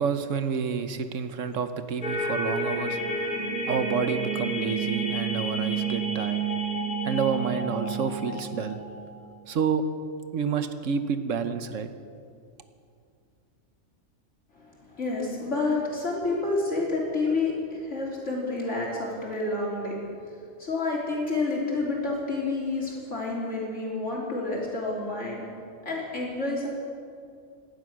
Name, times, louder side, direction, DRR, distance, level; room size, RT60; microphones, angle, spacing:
voice 1, 0.0-6.4 7.0-8.8 9.5-9.8 10.3-11.9, right 6 dB, 85° right, 10 dB, 1.3 m, -29 dB
sound 1, 2.0-9.3, right 3 dB, 40° left, 2.3 m, -30 dB
voice 2, 14.6-20.0 20.6-25.4 25.9-26.7, left 3 dB, 70° left, -3 dB, 3.8 m, -29 dB
18.0 x 11.5 x 6.3 m, 2.4 s
omnidirectional pair, 1.3 m